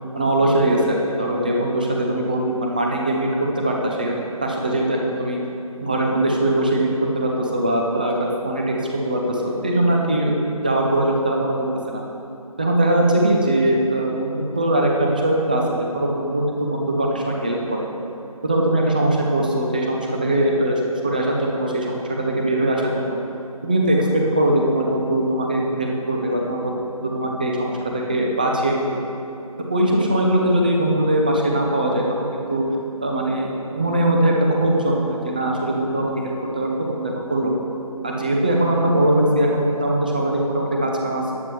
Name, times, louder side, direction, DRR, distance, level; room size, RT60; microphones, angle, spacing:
voice 1, 0.1-5.4 5.8-8.7 9.0-10.3 10.6-12.0 12.6-15.6 15.9-17.9 18.4-22.0 22.4-23.2 23.6-26.7 27.0-28.9 29.7-32.6 33.0-37.5 38.0-41.3, right 1 dB, 15° right, 0 dB, 0.6 m, -21 dB
14.5 x 10.0 x 3.2 m, 2.7 s
figure-of-eight pair, 160°, 19 cm